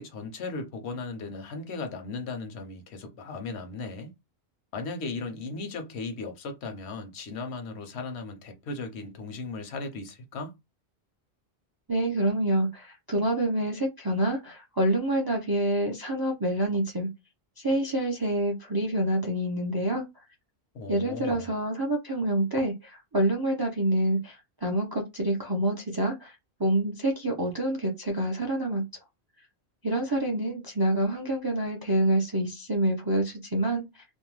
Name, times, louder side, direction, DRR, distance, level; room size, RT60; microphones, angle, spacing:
voice 1, 0.0-4.1 4.7-10.5 20.7-21.5, left 3 dB, 80° left, 1.0 m, -37 dB
voice 2, 11.9-17.1 17.6-20.0 20.9-28.8 29.8-34.0, right 1 dB, 40° right, 0.3 m, -27 dB
2.6 x 2.1 x 3.0 m
omnidirectional pair, 1.1 m